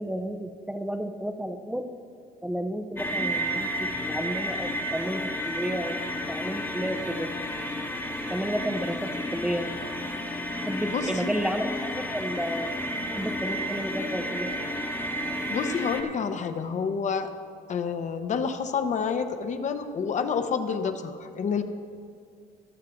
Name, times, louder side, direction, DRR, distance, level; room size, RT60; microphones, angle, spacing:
voice 1, 0.0-1.9 2.4-5.9 6.3-7.3 8.3-9.7 10.7-12.8 13.1-14.5, equal, 5° right, 6 dB, 0.6 m, -32 dB
sound 1, 3.0-16.0, equal, 15° left, 1.1 m, -32 dB
voice 2, 10.8-11.3 15.5-17.3 17.7-21.6, left 6 dB, 45° left, 8 dB, 0.9 m, -29 dB
20.0 x 7.3 x 3.9 m, 2.3 s
cardioid pair, 110°, 17 cm